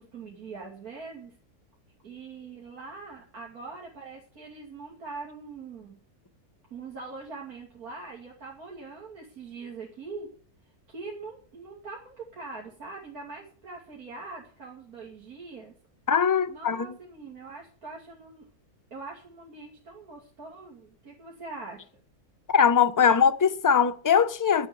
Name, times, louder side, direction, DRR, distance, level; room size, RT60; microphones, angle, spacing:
voice 1, 0.0-1.3 2.0-6.0 6.7-10.3 10.6-15.7 16.5-18.5 18.9-21.9, right 4 dB, 70° right, 3.1 m, -42 dB
voice 2, 16.1-16.9 22.5-24.7, left 7 dB, 25° left, 0.4 m, -21 dB
11.0 x 7.9 x 9.5 m
omnidirectional pair, 1.6 m